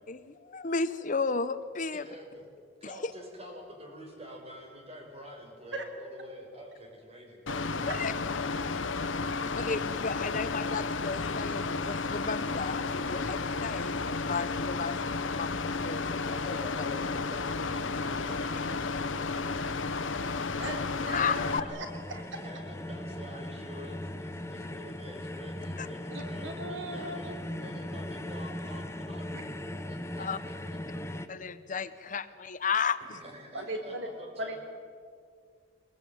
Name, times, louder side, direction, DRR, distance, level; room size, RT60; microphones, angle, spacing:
voice 1, 0.1-2.1 2.8-3.1 7.8-8.1 9.6-15.0 15.2-15.5 15.8-16.4 20.6-20.8 21.1-21.7 25.8-25.9 30.2-30.4 31.3-33.2, left 5 dB, 40° left, 13 dB, 0.8 m, -33 dB
voice 2, 1.9-2.5 2.8-7.4 16.4-21.8 22.3-30.5 33.0-34.6, equal, 30° right, 1 dB, 6.1 m, -48 dB
Mechanical fan, 7.5-21.6, left 4 dB, 80° left, 1.0 m, -32 dB
voice 3, 21.1-21.4 21.7-22.4 26.1-27.3 33.5-34.1 34.4-34.6, right 1 dB, 70° right, 4 dB, 3.5 m, -38 dB
sound 1, 21.3-31.3, left 1 dB, 15° left, 1.0 m, -39 dB
24.0 x 22.0 x 9.3 m, 2.1 s
head